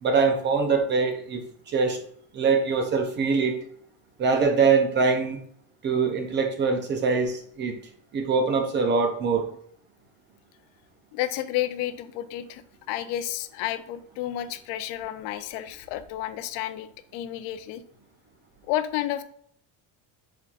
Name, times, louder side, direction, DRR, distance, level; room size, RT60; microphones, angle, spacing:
voice 1, 0.0-1.4 1.7-2.0 2.3-3.6 4.2-5.4 5.8-7.8 8.1-9.5, right 5 dB, 30° right, 5 dB, 0.4 m, -23 dB
voice 2, 11.1-17.8 18.7-19.2, left 13 dB, 85° left, 11 dB, 0.5 m, -31 dB
4.4 x 3.8 x 2.3 m, 0.63 s
cardioid pair, 160°, 40 cm